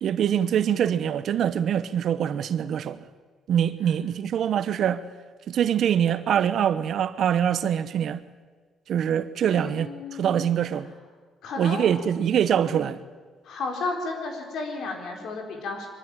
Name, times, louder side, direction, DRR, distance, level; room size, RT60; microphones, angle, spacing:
voice 1, 0.0-3.0 3.5-5.0 5.5-8.2 8.9-10.9 11.6-13.0, right 9 dB, 70° right, 1.0 m, -24 dB
voice 2, 9.4-10.5 11.4-11.9 12.7-12.9 13.4-15.9, left 3 dB, 75° left, 4.6 m, -33 dB
23.0 x 13.0 x 9.1 m
cardioid pair, 90°, 0 cm